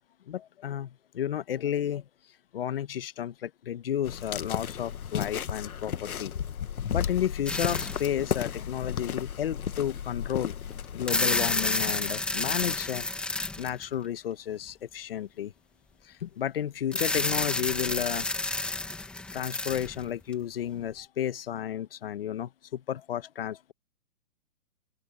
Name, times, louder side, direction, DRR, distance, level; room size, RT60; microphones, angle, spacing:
voice 1, 0.3-2.0 2.5-6.3 6.9-10.5 10.9-13.0 13.6-15.5 16.0-18.3 19.3-23.7, left 10 dB, 40° left, 1.1 m, -32 dB
sound 1, 4.0-11.5, left 8 dB, 75° left, 1.6 m, -34 dB
sound 2, 7.5-8.3 9.0-9.1 10.8-14.1 16.9-20.3, left 2 dB, ahead, 1.5 m, -30 dB
hypercardioid pair, 165°, 44 cm